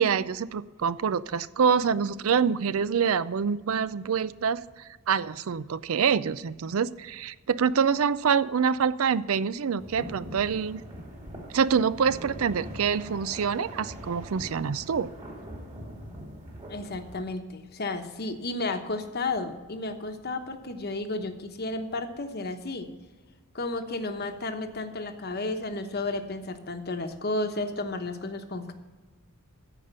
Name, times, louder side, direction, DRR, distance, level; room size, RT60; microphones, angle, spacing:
voice 1, 0.0-4.6 5.1-10.8 11.5-15.1, right 6 dB, 70° right, 17 dB, 0.4 m, -26 dB
sound 1, 9.8-17.2, equal, 30° right, 2.2 m, -42 dB
voice 2, 16.7-22.9 23.5-28.7, left 2 dB, 45° left, 7 dB, 1.0 m, -32 dB
14.0 x 5.2 x 8.1 m, 1.3 s
head